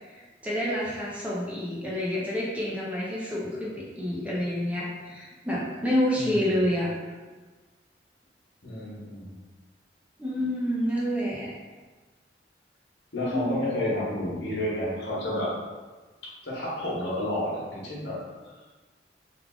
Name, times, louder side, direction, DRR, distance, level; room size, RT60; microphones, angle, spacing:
voice 1, 0.1-6.9 10.2-11.5 13.3-13.7, equal, 5° right, -6 dB, 0.5 m, -28 dB
voice 2, 6.1-6.6 8.6-9.3 13.1-15.5 16.4-18.2, left 1 dB, 75° left, -6 dB, 1.2 m, -30 dB
3.5 x 2.3 x 3.6 m, 1.3 s
head